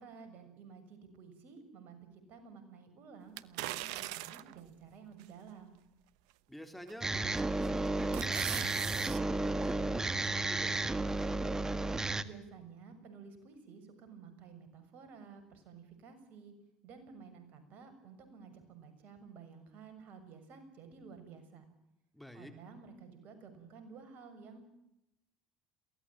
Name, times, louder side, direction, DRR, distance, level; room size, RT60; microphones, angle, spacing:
voice 1, 0.0-2.0 2.3-5.8 12.2-16.5 16.8-21.6 22.3-24.7, right 5 dB, 65° right, 8 dB, 6.7 m, -53 dB
sound 1, 3.4-4.6 5.2-5.3 6.9-7.2 7.6-9.2 9.6-9.7, right 17 dB, 80° right, 0.9 m, -40 dB
voice 2, 6.5-11.6 22.1-22.5, equal, 5° left, 7 dB, 3.6 m, -50 dB
sound 2, 7.0-12.2, right 2 dB, 20° right, 1.7 m, -33 dB
23.0 x 18.0 x 9.0 m, 0.84 s
hypercardioid pair, 65°, 3 cm